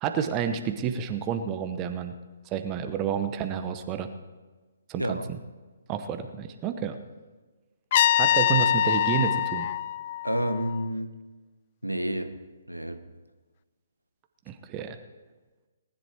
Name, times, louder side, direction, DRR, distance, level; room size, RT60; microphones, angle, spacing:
voice 1, 0.0-2.1 2.5-4.1 4.9-5.4 5.9-7.0 8.2-9.7 14.5-15.0, right 8 dB, 20° right, 8 dB, 0.9 m, -30 dB
Trumpet, 7.9-10.8, left 11 dB, 35° left, 0.4 m, -24 dB
voice 2, 10.2-11.1 11.8-12.3 12.7-13.0, equal, 90° right, 8 dB, 1.2 m, -29 dB
19.5 x 10.5 x 4.6 m, 1.3 s
figure-of-eight pair, 135°, 0 cm